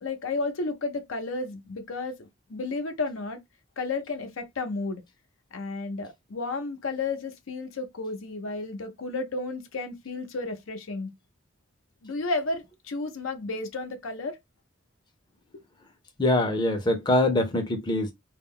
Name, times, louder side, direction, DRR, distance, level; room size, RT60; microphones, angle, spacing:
voice 1, 0.0-3.4 3.8-5.0 5.5-11.1 12.0-14.4, left 3 dB, 90° left, 0.6 m, -32 dB
voice 2, 16.2-18.1, left 1 dB, 20° left, 0.5 m, -23 dB
2.2 x 2.0 x 3.6 m
head